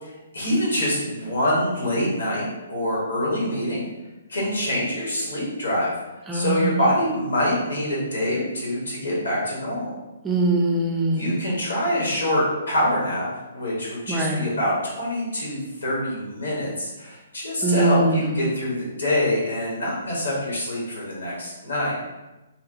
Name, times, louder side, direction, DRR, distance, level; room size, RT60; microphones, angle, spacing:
voice 1, 0.0-3.8 4.3-5.9 6.3-9.9 11.1-13.3 13.5-21.9, left 1 dB, 65° left, -5 dB, 1.0 m, -25 dB
voice 2, 6.3-6.8 10.2-11.3 14.1-14.4 17.6-18.3, right 2 dB, 10° right, -1 dB, 0.4 m, -22 dB
2.9 x 2.1 x 2.6 m, 1.1 s
figure-of-eight pair, 125°, 0 cm